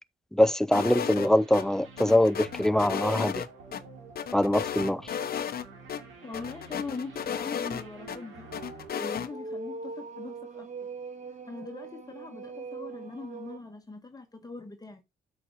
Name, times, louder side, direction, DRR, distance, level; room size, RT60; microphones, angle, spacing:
voice 1, 0.3-3.5 4.3-5.0, left 1 dB, 5° left, 0.5 m, -23 dB
sound 1, 0.7-1.6 2.0-3.8 4.2-5.6 5.9-6.0 6.3-8.2 8.5-9.3, left 8 dB, 50° left, 0.9 m, -34 dB
sound 2, 0.8-9.9, right 3 dB, 85° right, 2.8 m, -50 dB
sound 3, 5.6-13.6, right 4 dB, 35° right, 1.6 m, -43 dB
voice 2, 6.2-10.7 11.4-15.0, left 3 dB, 20° left, 1.4 m, -41 dB
8.4 x 6.2 x 3.3 m
cardioid pair, 90°, 20 cm